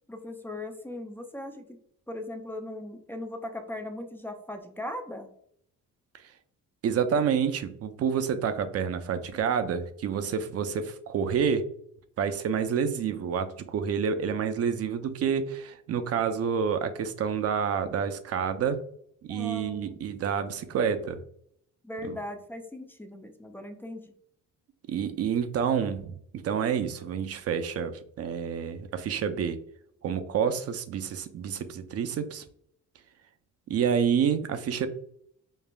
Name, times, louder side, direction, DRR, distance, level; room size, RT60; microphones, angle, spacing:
voice 1, 0.1-1.8 2.1-5.3 19.3-20.0 21.8-24.0, left 1 dB, 5° left, 5 dB, 0.4 m, -38 dB
voice 2, 6.8-11.7 12.2-18.8 19.2-21.2 22.0-22.2 24.9-29.6 30.0-32.4 33.7-34.9, right 7 dB, 50° right, 10 dB, 0.5 m, -28 dB
5.3 x 2.4 x 2.2 m, 0.66 s
cardioid pair, 115°, 31 cm